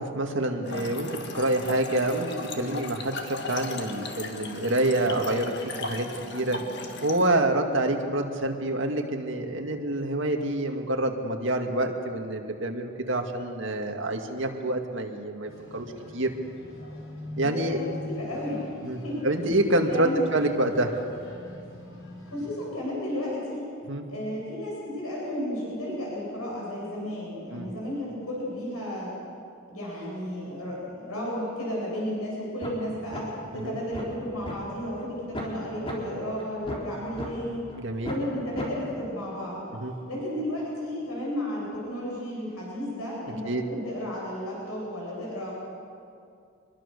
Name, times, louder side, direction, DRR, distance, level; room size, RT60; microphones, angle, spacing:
voice 1, 0.0-6.1 6.3-6.6 7.0-15.9 16.1-16.3 17.4-17.8 18.8-20.9 23.9-24.0 27.5-27.7 33.6-33.8 37.8-38.1 39.7-39.9 43.5-43.6, right 1 dB, 60° right, 3 dB, 2.2 m, -27 dB
Trickle dribble / Fill (with liquid), 0.6-7.3, left 3 dB, 50° left, 1.9 m, -36 dB
sound 1, 15.5-22.6, left 2 dB, 70° left, 5.3 m, -42 dB
voice 2, 17.4-19.2 19.8-20.1 22.3-23.6 24.1-29.1 29.7-33.2 33.5-37.6 38.1-39.6 40.1-45.5, equal, 90° left, -4 dB, 8.0 m, -33 dB
sound 2, 32.6-32.8 33.1-33.2 33.6-34.6 35.0-35.1 35.3-35.5 35.9-36.0 36.4-37.3 37.7-37.8 38.0-38.2 38.6-38.7, equal, 25° left, 3.9 m, -35 dB
25.5 x 21.5 x 6.8 m, 2.5 s
head